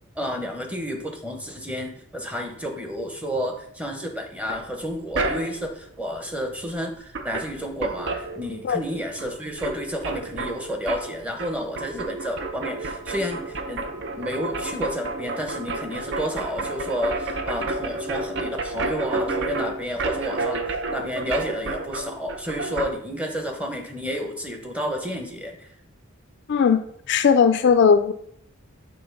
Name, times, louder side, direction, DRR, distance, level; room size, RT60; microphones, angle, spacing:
voice 1, 0.2-25.7, equal, 5° right, 3 dB, 0.8 m, -31 dB
sound 1, 4.5-5.8 6.8-6.9 7.1-8.9 9.2-22.9, right 3 dB, 55° right, 0.6 m, -31 dB
voice 2, 26.5-28.1, left 6 dB, 55° left, 10 dB, 0.3 m, -18 dB
6.9 x 3.6 x 5.3 m, 0.68 s
head